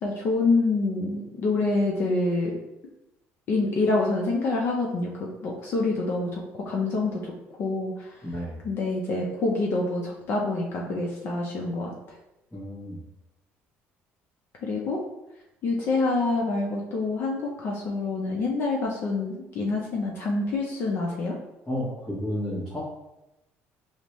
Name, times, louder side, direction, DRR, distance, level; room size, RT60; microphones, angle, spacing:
voice 1, 0.0-2.6 3.5-7.3 7.6-8.1 8.6-11.9 14.6-15.0 15.6-21.3, left 3 dB, 50° left, -2 dB, 0.5 m, -26 dB
voice 2, 8.2-8.6 12.5-13.0 21.7-22.8, equal, 10° left, -10 dB, 0.9 m, -32 dB
5.1 x 2.1 x 3.0 m, 0.94 s
cardioid pair, 150°, 5 cm